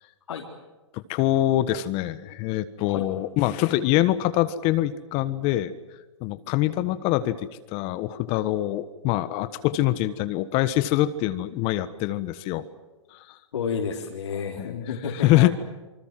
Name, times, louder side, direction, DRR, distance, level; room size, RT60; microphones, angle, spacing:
voice 1, 0.9-5.8 6.2-12.6 13.1-13.4 14.6-14.7 15.2-15.5, left 15 dB, 40° left, 13 dB, 1.4 m, -24 dB
voice 2, 13.5-15.5, left 6 dB, 75° left, -2 dB, 4.0 m, -30 dB
27.0 x 25.0 x 7.7 m, 1.2 s
hypercardioid pair, 125°, 16 cm